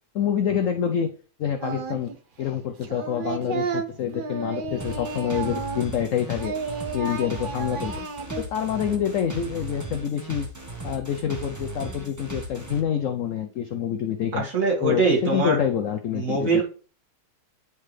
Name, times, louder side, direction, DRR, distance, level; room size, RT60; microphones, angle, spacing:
voice 1, 0.1-1.1 1.4-2.1 2.4-6.6 6.9-7.9 8.4-10.5 10.8-14.5 14.8-16.6, left 9 dB, 75° left, 7 dB, 0.7 m, -27 dB
Singing, 1.6-2.2 2.4-6.1 6.4-8.4, right 4 dB, 65° right, 0.5 m, -32 dB
sound 1, 4.8-12.8, right 3 dB, 15° right, 0.8 m, -37 dB
voice 2, 14.4-15.6 16.1-16.6, right 3 dB, 50° right, -2 dB, 2.3 m, -22 dB
9.3 x 4.1 x 3.2 m, 0.40 s
omnidirectional pair, 1.9 m